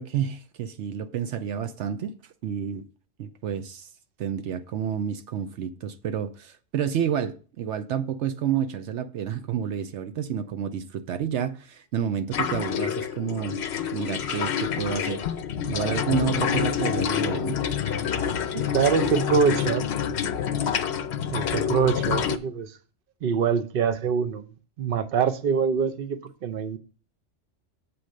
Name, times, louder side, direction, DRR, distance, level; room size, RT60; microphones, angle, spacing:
voice 1, 0.0-2.1 2.4-2.8 3.2-3.9 4.2-13.6 13.9-15.3 15.7-17.6, right 8 dB, 80° right, 0.9 m, -29 dB
sound 1, 12.3-22.4, left 8 dB, 70° left, 0.9 m, -27 dB
voice 2, 18.5-19.9 21.3-22.8 23.2-24.4 24.8-26.8, right 6 dB, 55° right, 0.9 m, -24 dB
7.9 x 4.3 x 6.4 m
omnidirectional pair, 1.2 m